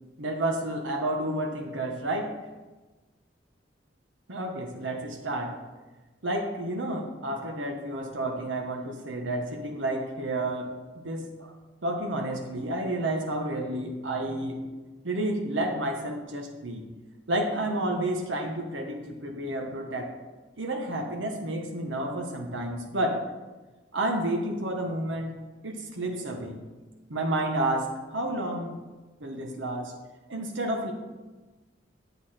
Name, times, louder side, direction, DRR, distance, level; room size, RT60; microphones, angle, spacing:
voice 1, 0.2-2.3 4.3-5.6 6.2-10.7 11.0-11.5 11.8-14.6 15.0-16.8 17.3-20.2 20.6-23.2 23.9-25.3 25.6-26.6 27.1-28.8 29.2-29.9 30.3-30.9, right 1 dB, 80° right, 2 dB, 1.1 m, -30 dB
8.1 x 7.0 x 4.3 m, 1.2 s
head